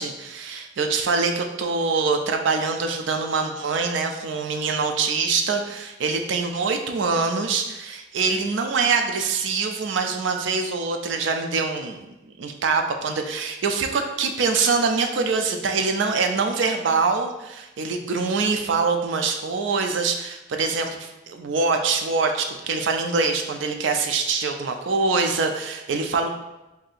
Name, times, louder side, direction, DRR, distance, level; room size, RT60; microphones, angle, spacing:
voice 1, 0.0-26.3, right 4 dB, 65° right, 5 dB, 0.4 m, -24 dB
2.7 x 2.7 x 4.0 m, 1.0 s
head